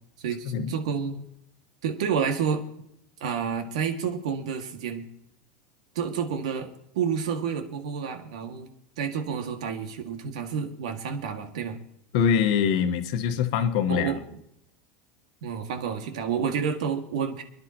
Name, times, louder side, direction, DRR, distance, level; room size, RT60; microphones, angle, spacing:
voice 1, 0.2-1.2 1.8-2.6 3.2-5.1 6.0-6.7 6.9-8.7 9.0-11.8 13.9-14.4 15.4-17.4, right 7 dB, 90° right, 5 dB, 2.0 m, -29 dB
voice 2, 12.1-14.1, left 7 dB, 65° left, 8 dB, 1.3 m, -23 dB
30.0 x 10.5 x 3.0 m, 0.77 s
supercardioid pair, 145°, 4 cm